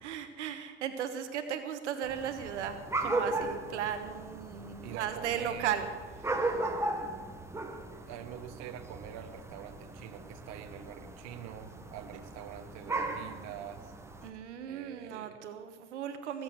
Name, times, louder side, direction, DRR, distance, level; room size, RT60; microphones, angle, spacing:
voice 1, 0.0-5.9 14.2-16.4, right 9 dB, 80° right, 8 dB, 1.3 m, -36 dB
sound 1, 2.0-14.3, right 2 dB, 10° right, 1.3 m, -37 dB
voice 2, 4.8-5.7 8.1-13.9 14.7-15.5, right 10 dB, 50° right, 7 dB, 1.3 m, -45 dB
20.5 x 8.1 x 6.3 m, 1.5 s
hypercardioid pair, 95°, 34 cm